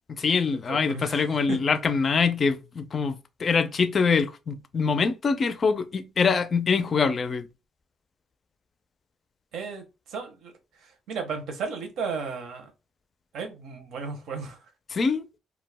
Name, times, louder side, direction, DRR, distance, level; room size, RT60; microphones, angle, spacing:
voice 1, 0.1-7.5 14.9-15.2, left 5 dB, 45° left, 0.4 m, -24 dB
voice 2, 0.7-1.6 9.5-12.7 13.3-14.6, right 5 dB, 80° right, 0.7 m, -35 dB
2.3 x 2.1 x 3.3 m
cardioid pair, 90°, 0 cm